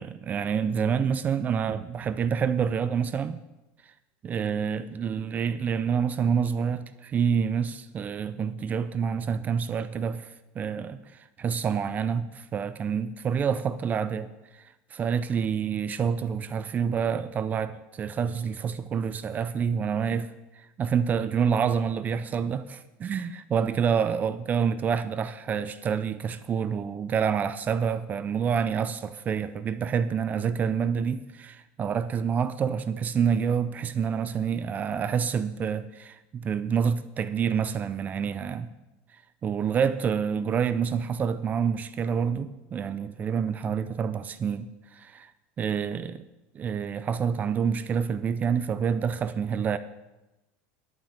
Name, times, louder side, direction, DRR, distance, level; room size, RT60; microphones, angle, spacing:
voice 1, 0.0-3.4 4.2-10.3 10.6-11.0 11.4-14.6 14.9-22.8 23.0-38.7 39.4-45.3 45.6-46.2 46.5-49.8, right 7 dB, 25° right, 0.4 m, -27 dB
11.0 x 5.8 x 8.0 m
supercardioid pair, 145°, 6 cm